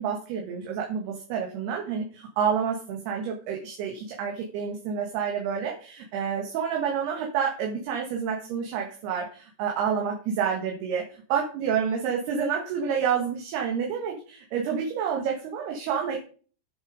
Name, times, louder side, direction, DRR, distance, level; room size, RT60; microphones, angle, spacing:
voice 1, 0.0-11.0 11.3-16.2, right 7 dB, 70° right, 0 dB, 3.3 m, -29 dB
10.5 x 7.1 x 5.0 m, 0.41 s
omnidirectional pair, 5.0 m